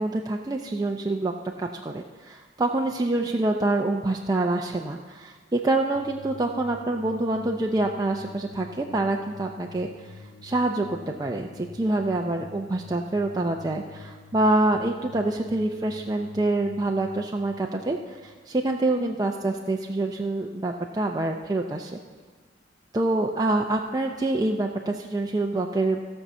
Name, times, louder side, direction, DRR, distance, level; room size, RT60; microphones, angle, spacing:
voice 1, 0.0-1.3 1.6-10.1 10.4-22.0 22.9-26.0, right 2 dB, 20° right, 1 dB, 0.5 m, -26 dB
sound 1, 5.9-19.1, left 3 dB, 85° left, 1.8 m, -47 dB
15.5 x 5.5 x 7.0 m, 1.5 s
head